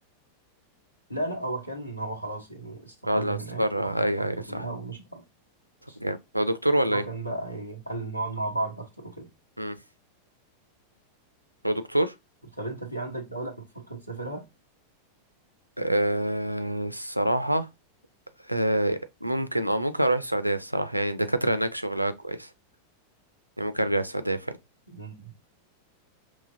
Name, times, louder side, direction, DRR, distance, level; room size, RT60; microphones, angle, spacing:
voice 1, 1.1-5.2 5.9-6.0 6.9-9.3 12.5-14.4 24.9-25.3, right 2 dB, 90° left, 1.1 m, -35 dB
voice 2, 3.0-4.7 6.0-7.0 9.6-9.8 11.6-12.1 15.8-17.7 18.5-22.5 23.6-24.5, right 1 dB, 90° right, 0.4 m, -26 dB
5.5 x 2.9 x 2.6 m
figure-of-eight pair, 90°, 0 cm